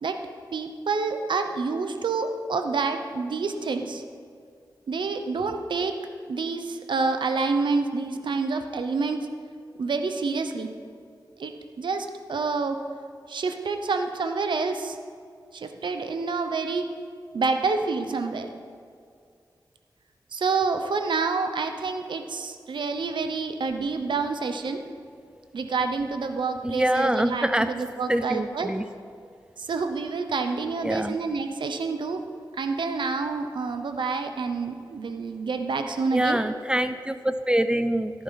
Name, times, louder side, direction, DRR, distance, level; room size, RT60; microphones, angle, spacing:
voice 1, 0.5-4.0 4.9-6.0 6.3-9.3 9.8-10.7 11.4-12.8 13.3-15.0 15.5-16.9 17.3-18.5 20.3-24.8 25.5-28.7 29.6-32.2 32.6-36.4, right 4 dB, 85° right, 7 dB, 0.8 m, -28 dB
voice 2, 26.6-27.7 28.1-28.8 30.8-31.2 36.1-38.2, right 1 dB, 10° right, 10 dB, 0.4 m, -25 dB
14.0 x 11.0 x 4.1 m, 2.2 s
wide cardioid pair, 85°, 8 cm